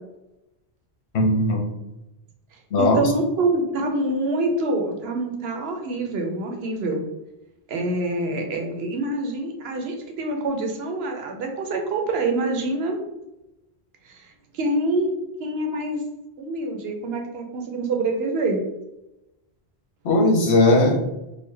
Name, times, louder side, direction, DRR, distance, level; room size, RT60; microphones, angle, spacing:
voice 1, 1.1-1.6 2.7-3.1 20.0-21.0, left 2 dB, 85° left, -1 dB, 1.1 m, -18 dB
voice 2, 2.5-7.0 7.7-13.0 14.0-16.0 16.4-18.6, right 2 dB, 70° right, 3 dB, 0.9 m, -26 dB
3.9 x 2.2 x 3.2 m, 0.95 s
omnidirectional pair, 1.1 m